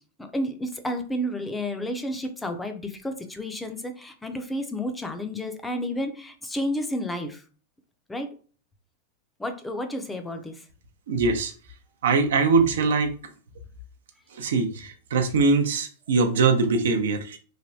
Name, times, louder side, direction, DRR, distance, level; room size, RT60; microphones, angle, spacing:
voice 1, 0.3-7.4 8.1-8.3 9.4-10.5, equal, 10° left, 6 dB, 0.5 m, -31 dB
voice 2, 11.1-11.5 12.0-13.1 14.3-17.4, right 4 dB, 75° right, 6 dB, 0.6 m, -22 dB
3.3 x 2.2 x 2.7 m, 0.40 s
hypercardioid pair, 115°, 0 cm